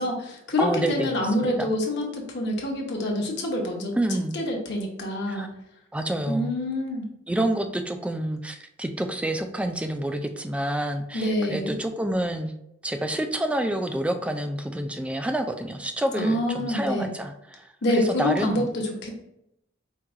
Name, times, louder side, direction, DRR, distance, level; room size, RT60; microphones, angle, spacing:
voice 1, 0.0-3.9 4.3-5.5 6.3-7.1 11.1-11.7 16.2-17.1 17.8-19.1, left 1 dB, 60° left, 0 dB, 1.0 m, -26 dB
voice 2, 0.6-1.7 3.9-4.4 5.3-5.5 5.9-6.5 7.3-12.5 12.8-17.7 17.9-18.7, right 1 dB, 5° right, 6 dB, 0.3 m, -28 dB
4.6 x 2.3 x 3.6 m, 0.81 s
head